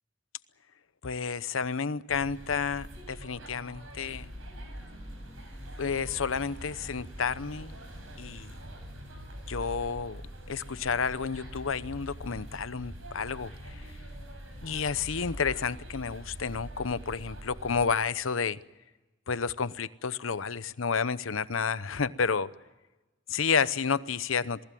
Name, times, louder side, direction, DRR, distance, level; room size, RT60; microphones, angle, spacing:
voice 1, 1.0-4.3 5.8-7.8 8.2-8.5 9.5-10.2 10.5-13.8 14.6-18.6 19.3-22.5 23.3-24.6, left 5 dB, 85° left, 15 dB, 0.8 m, -30 dB
sound 1, 2.1-17.9, equal, 85° right, 6.9 m, -44 dB
27.5 x 19.5 x 7.7 m, 1.1 s
head